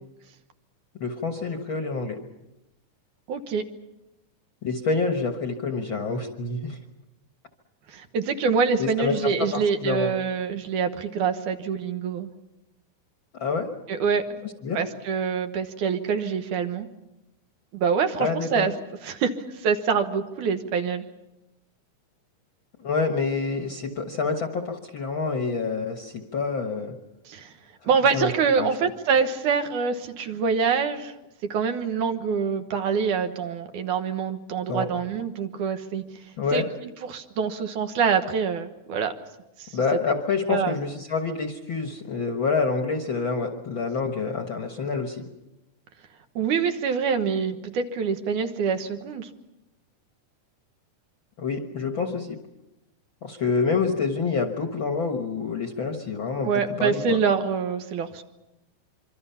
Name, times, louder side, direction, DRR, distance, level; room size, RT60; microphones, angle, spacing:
voice 1, 1.0-2.2 4.6-6.8 8.8-10.1 13.3-13.7 14.4-14.8 18.2-18.7 22.8-26.9 28.1-28.3 28.6-28.7 34.7-34.9 36.4-36.7 39.7-45.2 51.4-52.4 53.2-57.2, left 4 dB, 50° left, 4 dB, 1.6 m, -27 dB
voice 2, 3.3-3.6 7.9-12.3 13.9-14.2 14.7-16.9 17.7-18.7 19.0-21.0 27.3-27.5 27.9-31.1 31.5-36.0 36.5-36.6 37.0-39.1 39.6-39.8 40.5-40.8 46.4-49.3 56.4-58.2, right 6 dB, 70° right, 7 dB, 2.6 m, -25 dB
26.0 x 24.5 x 5.7 m, 0.94 s
omnidirectional pair, 3.7 m